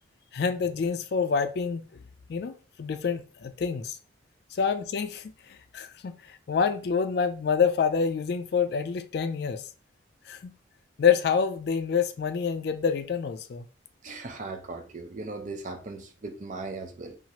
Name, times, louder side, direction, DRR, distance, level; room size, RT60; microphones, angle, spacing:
voice 1, 0.3-1.8 2.3-4.0 4.5-9.6 10.3-10.5 11.0-13.6, left 6 dB, 55° left, 0.3 m, -27 dB
voice 2, 14.0-17.2, right 3 dB, 40° right, 0.4 m, -38 dB
2.9 x 2.4 x 2.8 m
head